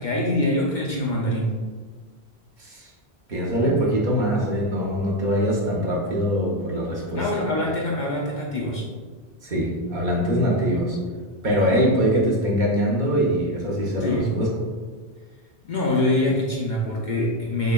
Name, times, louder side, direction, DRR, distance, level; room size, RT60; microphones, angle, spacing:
voice 1, 0.0-1.5 7.2-8.8 14.0-14.3 15.6-17.7, left 1 dB, 55° left, -3 dB, 0.6 m, -24 dB
voice 2, 2.6-2.9 3.3-7.3 9.4-11.0 11.4-14.5, equal, 50° right, -3 dB, 0.8 m, -23 dB
6.3 x 2.2 x 2.2 m, 1.5 s
omnidirectional pair, 1.1 m